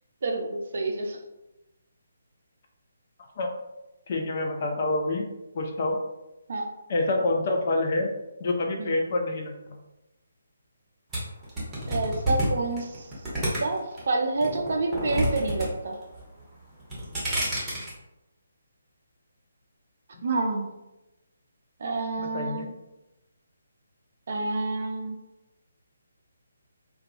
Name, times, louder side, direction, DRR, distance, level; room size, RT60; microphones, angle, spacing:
voice 1, 0.2-1.2 6.5-6.7 8.8-8.9 11.9-13.1 13.6-16.0 20.2-20.7 21.8-22.7 24.3-25.2, right 3 dB, 50° right, 2 dB, 0.4 m, -28 dB
voice 2, 4.1-5.3 5.5-6.0 6.9-8.1 8.4-9.8 17.3-17.5 22.2-22.7, left 2 dB, 40° left, 2 dB, 0.4 m, -27 dB
sound 1, 11.1-14.0 14.4-15.7 15.9-16.4 16.8-17.9, right 1 dB, 10° right, 0.7 m, -29 dB
2.3 x 2.2 x 2.6 m, 0.95 s
figure-of-eight pair, 140°, 0 cm